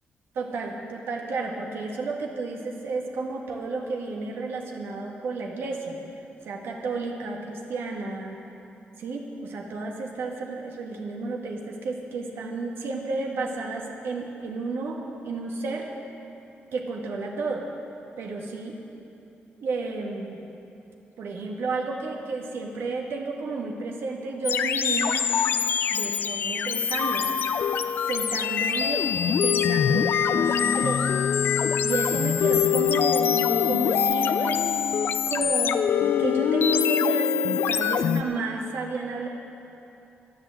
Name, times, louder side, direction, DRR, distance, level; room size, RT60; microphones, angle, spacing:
voice 1, 0.4-6.0 6.4-8.4 9.0-15.9 16.7-17.7 18.2-18.8 19.6-20.4 21.2-25.3 25.9-27.3 28.1-31.1 31.8-34.7 35.3-39.3, right 3 dB, 75° right, 0 dB, 1.7 m, -32 dB
sound 1, 24.4-38.2, left 8 dB, 60° left, 0.5 m, -24 dB
13.0 x 11.0 x 7.7 m, 2.8 s
wide cardioid pair, 160°, 4 cm